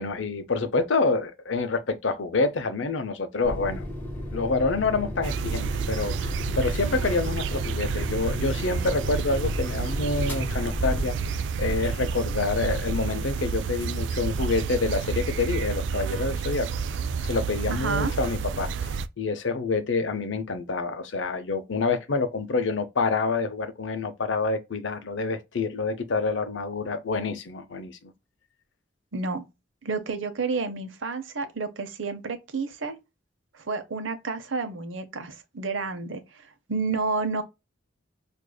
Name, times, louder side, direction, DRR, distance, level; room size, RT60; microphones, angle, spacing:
voice 1, 0.0-3.9 4.3-11.1 11.6-16.7 17.2-28.1, left 3 dB, 75° left, 0.6 m, -27 dB
sound 1, 3.4-11.5, left 1 dB, 10° left, 2.0 m, -34 dB
sound 2, 5.2-19.1, right 5 dB, 70° right, 0.3 m, -30 dB
voice 2, 17.7-18.1 29.1-29.4 29.8-33.0 33.5-37.4, right 4 dB, 85° right, 0.8 m, -30 dB
4.8 x 2.6 x 2.2 m
head